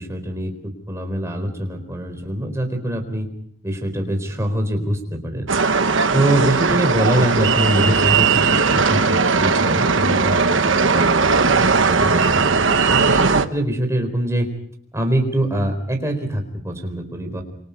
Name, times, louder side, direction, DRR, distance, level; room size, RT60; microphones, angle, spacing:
voice 1, 0.0-3.3 3.6-5.5 6.1-11.1 11.5-14.5 14.9-17.4, right 1 dB, 15° right, 4 dB, 4.2 m, -24 dB
sound 1, 5.5-13.5, right 4 dB, 70° right, 1.2 m, -18 dB
27.5 x 25.0 x 5.3 m, 0.64 s
head